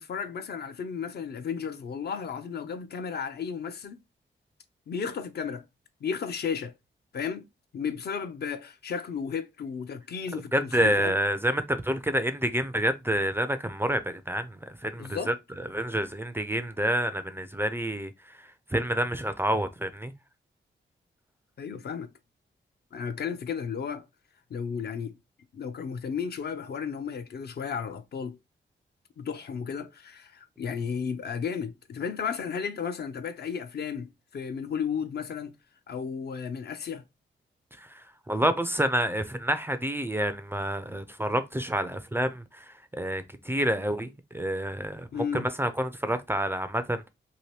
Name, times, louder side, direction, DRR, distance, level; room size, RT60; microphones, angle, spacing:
voice 1, 0.0-4.0 4.9-5.6 6.0-6.7 7.1-7.4 7.7-11.2 14.9-15.3 21.6-22.1 22.9-24.1 24.5-25.2 25.5-28.4 29.2-35.5 35.9-37.0 45.1-45.5, left 6 dB, 55° left, 0.4 m, -34 dB
voice 2, 10.3-15.3 15.7-18.1 18.7-20.1 37.8-45.1 45.3-47.1, right 1 dB, 10° right, 0.3 m, -28 dB
2.8 x 2.5 x 3.1 m
wide cardioid pair, 110°, 19 cm